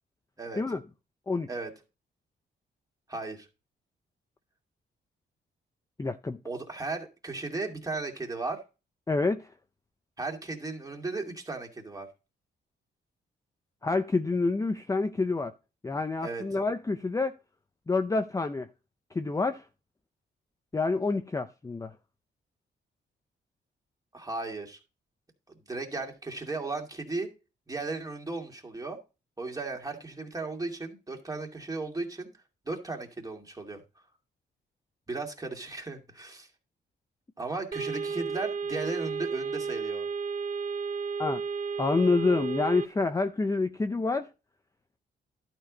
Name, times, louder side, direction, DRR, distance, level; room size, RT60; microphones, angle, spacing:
voice 1, 3.1-3.5 6.4-8.6 10.2-12.1 16.2-16.4 24.1-24.8 25.7-27.3 27.7-29.0 29.4-32.3 32.6-33.8 35.1-36.5 37.4-40.1, right 3 dB, 20° right, 2.5 m, -35 dB
voice 2, 6.0-6.4 9.1-9.5 13.8-15.5 15.8-17.4 17.9-18.7 19.1-19.6 20.7-21.9 41.2-41.4 41.8-44.3, left 3 dB, 15° left, 0.5 m, -27 dB
sound 1, 37.7-42.9, right 5 dB, 40° right, 0.8 m, -33 dB
11.5 x 4.6 x 5.1 m
cardioid pair, 85°, 20 cm